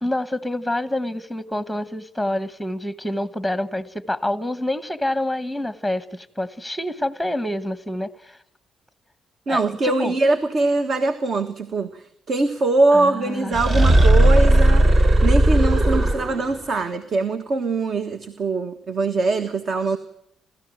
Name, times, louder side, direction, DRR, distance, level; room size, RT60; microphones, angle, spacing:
voice 1, 0.0-8.4 9.5-10.1 12.9-13.6, left 1 dB, ahead, 1.2 m, -27 dB
voice 2, 9.5-20.0, right 3 dB, 55° right, 1.6 m, -22 dB
sound 1, 13.5-16.6, right 1 dB, 35° right, 1.5 m, -15 dB
29.0 x 14.0 x 9.1 m
cardioid pair, 90°, 0 cm